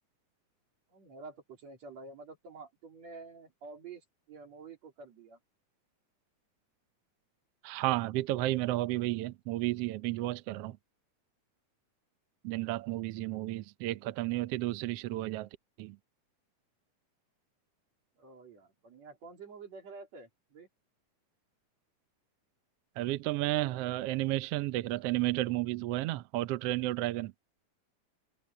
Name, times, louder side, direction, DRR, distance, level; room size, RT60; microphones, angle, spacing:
voice 1, 0.9-5.4 18.2-20.7, right 4 dB, 60° right, 4.6 m, -49 dB
voice 2, 7.6-10.8 12.4-15.5 15.8-16.0 23.0-27.3, right 17 dB, 85° right, 1.3 m, -32 dB
omnidirectional pair, 3.6 m